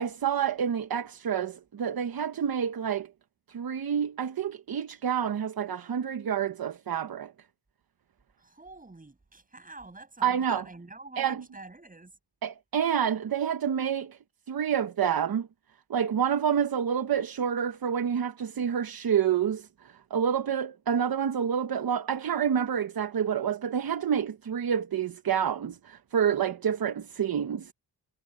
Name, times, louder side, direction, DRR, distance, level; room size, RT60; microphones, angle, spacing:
voice 1, 0.0-3.1 3.5-7.3 10.2-10.6 11.2-11.4 12.4-14.2 14.5-15.5 15.9-27.7, right 8 dB, 60° right, 1.0 m, -28 dB
voice 2, 8.4-12.1, right 2 dB, 20° right, 7.0 m, -46 dB
wide cardioid pair, 180°, 41 cm